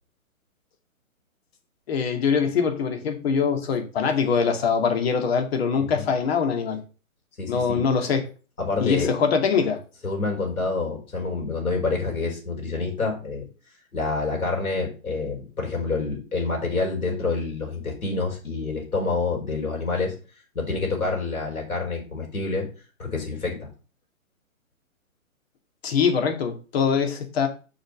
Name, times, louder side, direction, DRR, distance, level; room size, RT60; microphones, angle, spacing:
voice 1, 1.9-6.8 7.5-8.3 8.8-9.8 25.8-27.5, left 6 dB, 45° left, 4 dB, 2.2 m, -23 dB
voice 2, 7.4-7.8 8.6-9.1 10.0-13.4 13.9-20.1 20.5-22.7 23.0-23.7, left 3 dB, 85° left, 0 dB, 4.8 m, -27 dB
6.3 x 5.3 x 6.5 m, 0.36 s
hypercardioid pair, 140°, 42 cm